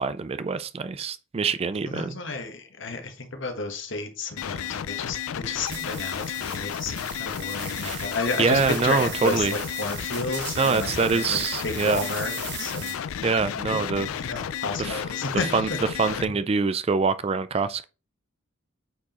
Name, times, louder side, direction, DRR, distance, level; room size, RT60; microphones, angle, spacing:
voice 1, 0.0-2.2 7.8-8.1 8.4-9.5 10.6-12.0 13.2-14.1 14.8-15.0 15.5-15.7 16.0-17.8, right 4 dB, 30° right, 0.3 m, -25 dB
voice 2, 1.8-12.3 12.6-13.0 13.7-15.8, left 3 dB, 60° left, 1.3 m, -32 dB
sound 1, 4.4-16.2, left 9 dB, 85° left, 0.4 m, -32 dB
sound 2, 5.7-13.2, right 7 dB, 55° right, 1.6 m, -39 dB
8.5 x 4.6 x 3.0 m
head